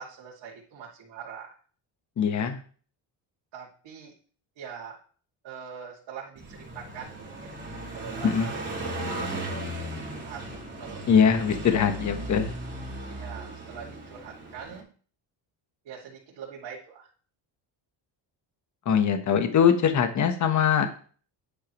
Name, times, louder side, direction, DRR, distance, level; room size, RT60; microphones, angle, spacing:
voice 1, 0.0-1.6 3.5-4.1 4.6-5.0 5.4-7.5 7.9-8.5 9.1-10.5 10.8-11.0 13.1-14.9 15.8-17.1, right 7 dB, 65° right, -4 dB, 2.5 m, -43 dB
voice 2, 2.2-2.6 8.2-8.5 11.1-12.5 18.8-20.9, left 7 dB, 40° left, 7 dB, 1.2 m, -22 dB
Car passing by, 6.4-14.8, right 1 dB, 25° right, 3.6 m, -36 dB
10.5 x 10.0 x 3.1 m, 0.43 s
cardioid pair, 135°, 46 cm